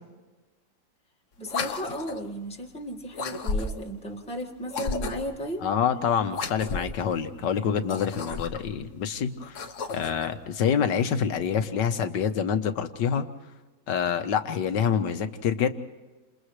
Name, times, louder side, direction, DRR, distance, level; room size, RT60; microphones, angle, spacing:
sound 1, 1.4-2.3 3.1-3.9 4.7-5.4 6.3-7.0 7.8-8.7 9.4-10.3, left 4 dB, 50° left, 1.3 m, -33 dB
voice 1, 1.4-5.7, equal, 5° left, 0 dB, 1.7 m, -35 dB
voice 2, 5.6-9.6 9.9-13.3 13.9-15.7, left 7 dB, 80° left, 8 dB, 1.8 m, -26 dB
29.5 x 27.5 x 3.3 m, 1.2 s
omnidirectional pair, 1.9 m